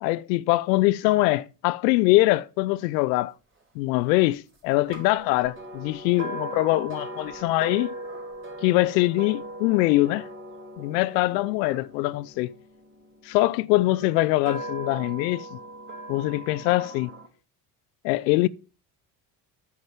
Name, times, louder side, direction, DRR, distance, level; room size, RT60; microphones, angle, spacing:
voice 1, 0.0-3.3 3.8-7.9 8.6-10.3 10.8-12.5 13.3-15.6 16.1-17.1 18.0-18.5, left 19 dB, 85° left, 0.6 m, -23 dB
sound 1, 4.9-13.1 13.8-17.3, right 1 dB, 25° right, 4.1 m, -39 dB
8.9 x 6.5 x 7.2 m
supercardioid pair, 75°, 48 cm